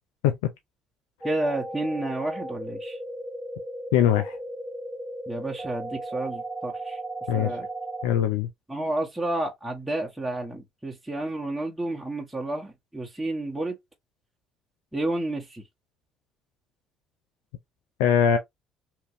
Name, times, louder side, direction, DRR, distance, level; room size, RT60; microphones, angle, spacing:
voice 1, 1.2-3.0 5.3-7.0 7.3-7.7 8.7-13.8 14.9-15.6, right 2 dB, 5° right, 1.0 m, -30 dB
sound 1, 1.2-8.1, right 1 dB, 20° right, 0.7 m, -36 dB
voice 2, 3.9-4.4 7.3-7.6 8.0-8.5 18.0-18.4, left 9 dB, 85° left, 0.5 m, -21 dB
2.9 x 2.6 x 2.6 m
hypercardioid pair, 65°, 0 cm